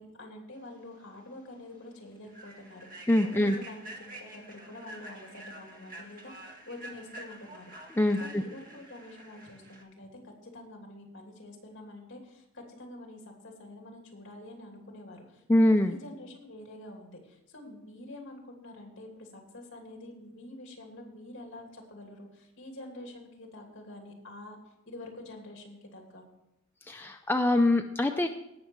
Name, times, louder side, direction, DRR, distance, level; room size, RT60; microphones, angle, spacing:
voice 1, 0.0-3.1 3.3-7.7 8.2-24.6 24.8-26.2, left 1 dB, 60° left, 2 dB, 2.9 m, -47 dB
Human voice / Train, 1.0-1.1 1.5-1.7 2.2-9.8, right 1 dB, 40° right, 1.7 m, -47 dB
voice 2, 3.1-3.6 8.0-8.4 15.5-15.9 26.8-28.3, left 1 dB, 10° left, 5 dB, 0.4 m, -24 dB
17.5 x 6.5 x 4.6 m, 0.87 s
head